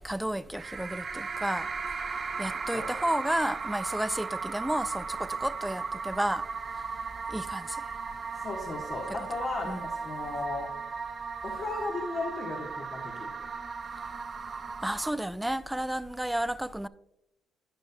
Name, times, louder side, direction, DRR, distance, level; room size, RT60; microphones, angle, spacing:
voice 1, 0.0-1.7 2.1-6.5 7.3-7.8 9.1-9.2 9.6-9.9 14.8-16.9, right 1 dB, 5° right, 0.3 m, -32 dB
sound 1, 0.6-15.1, right 5 dB, 35° right, 0.8 m, -36 dB
voice 2, 8.3-10.7 11.4-13.3, left 3 dB, 45° left, 1.4 m, -35 dB
16.0 x 5.4 x 2.3 m
cardioid pair, 95°, 0 cm